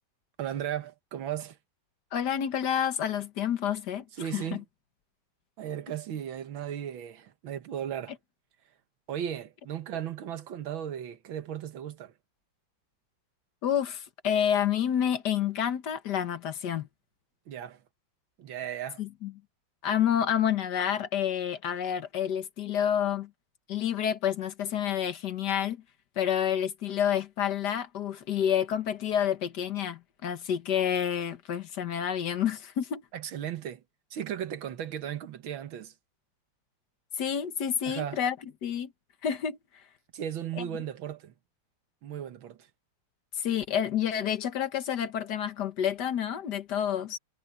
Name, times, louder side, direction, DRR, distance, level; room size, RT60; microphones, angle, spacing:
voice 1, 0.4-1.6 4.2-4.6 5.6-8.1 9.1-12.1 17.5-17.8 18.4-19.0 33.1-33.8 34.1-35.9 37.8-38.2 40.1-41.3 42.0-42.7, right 10 dB, 80° right, 2.0 m, -36 dB
voice 2, 2.1-4.1 4.3-4.6 13.6-16.9 19.0-19.3 19.8-23.3 23.7-25.8 26.2-33.0 37.2-38.4 38.6-38.9 39.2-39.6 40.6-40.7 43.4-47.2, left 9 dB, 60° left, 1.8 m, -29 dB
omnidirectional pair, 2.1 m